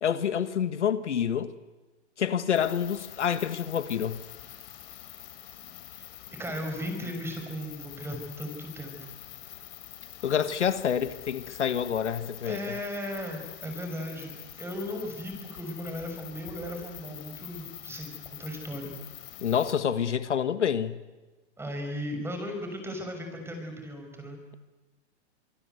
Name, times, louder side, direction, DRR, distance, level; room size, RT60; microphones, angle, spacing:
voice 1, 0.0-1.5 2.2-4.2 10.2-12.6 19.4-21.0, left 8 dB, 90° left, 1.7 m, -27 dB
sound 1, 2.5-19.7, left 13 dB, 55° left, 4.3 m, -45 dB
voice 2, 6.4-9.1 12.4-18.1 18.4-18.9 21.6-24.4, equal, 5° right, 6.3 m, -36 dB
25.5 x 24.0 x 8.2 m
hypercardioid pair, 135°, 34 cm